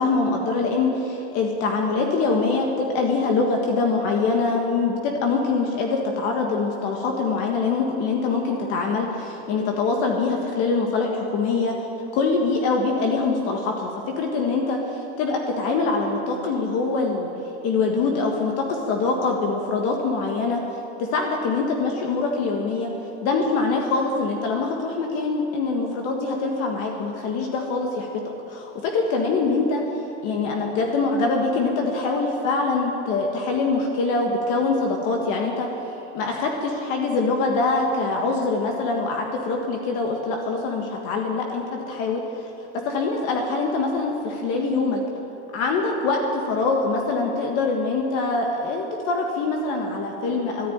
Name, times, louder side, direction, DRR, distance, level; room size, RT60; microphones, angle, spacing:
voice 1, 0.0-11.7 12.1-13.9 14.2-17.3 17.6-20.6 21.0-22.9 23.2-28.1 28.5-29.8 30.2-35.7 36.1-42.2 42.8-45.0 45.5-50.7, left 3 dB, 45° left, 1 dB, 1.7 m, -24 dB
13.5 x 10.5 x 8.8 m, 2.9 s
supercardioid pair, 145°, 34 cm